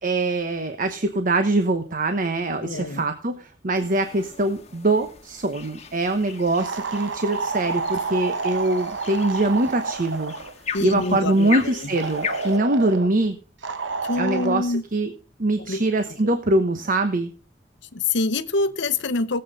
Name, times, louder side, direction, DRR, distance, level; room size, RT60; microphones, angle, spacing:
voice 1, 0.0-10.3 10.8-13.4 14.2-15.1 15.4-17.3, right 2 dB, 45° right, 8 dB, 1.0 m, -23 dB
voice 2, 2.6-3.0 10.7-12.0 14.0-14.9 15.6-16.3 17.9-19.4, left 3 dB, 65° left, 12 dB, 0.9 m, -26 dB
sound 1, 3.8-12.6, left 6 dB, 35° left, 1.3 m, -37 dB
sound 2, 6.6-10.6 11.9-13.1 13.6-14.6, right 4 dB, 75° right, 1.0 m, -29 dB
18.0 x 7.9 x 4.0 m, 0.39 s
head